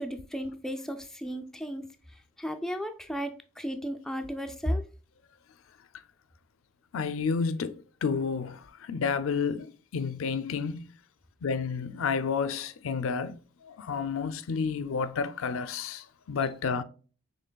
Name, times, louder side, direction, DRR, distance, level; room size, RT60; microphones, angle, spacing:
voice 1, 0.0-1.9 2.4-4.9, equal, ahead, 0.3 m, -34 dB
voice 2, 6.9-10.9 11.4-16.8, left 5 dB, 70° left, 0.4 m, -31 dB
6.5 x 3.3 x 2.2 m
head